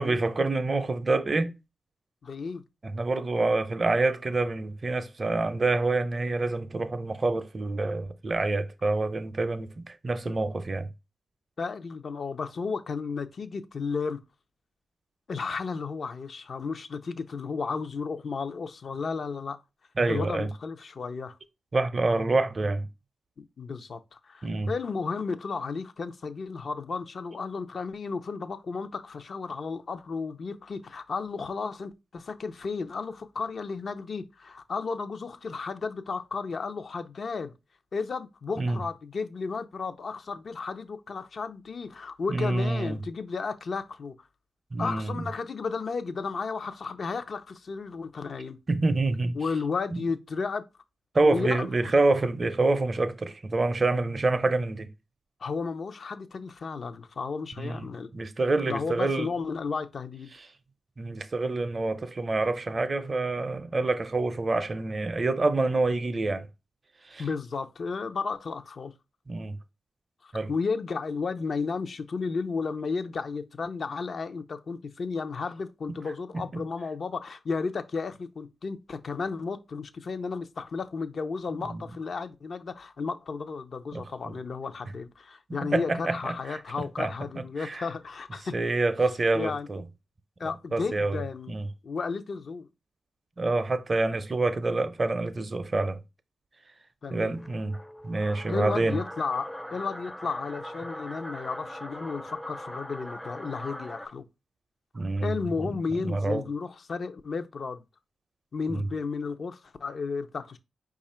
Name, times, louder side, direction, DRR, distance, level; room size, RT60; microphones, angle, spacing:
voice 1, 0.0-1.5 2.8-10.9 20.0-20.5 21.7-22.9 24.4-24.7 38.6-38.8 42.3-43.0 44.7-45.2 48.7-49.4 49.9-50.0 51.1-54.9 57.6-59.3 61.0-66.5 67.1-67.3 69.3-69.6 70.3-70.5 76.5-76.6 81.7-81.8 83.9-84.3 85.6-86.6 87.0-87.1 87.6-87.8 88.5-89.8 90.7-91.2 91.5-91.6 93.4-96.0 97.1-97.8 98.0-99.0 104.9-105.8 106.0-106.4 108.7-108.9, right 2 dB, 45° right, 0.5 m, -27 dB
voice 2, 2.2-2.6 11.6-14.2 15.3-19.6 20.1-21.4 23.4-37.5 37.9-44.1 44.8-48.6 49.3-50.6 51.2-51.9 55.4-58.1 58.7-60.3 67.2-68.9 70.2-88.5 89.3-89.7 90.4-91.5 91.8-92.7 97.0-97.4 98.5-104.2 105.2-107.8 108.5-110.6, left 4 dB, 60° left, 0.6 m, -33 dB
sound 1, 97.3-104.1, equal, 10° left, 0.5 m, -40 dB
4.9 x 2.4 x 4.2 m
cardioid pair, 50°, 0 cm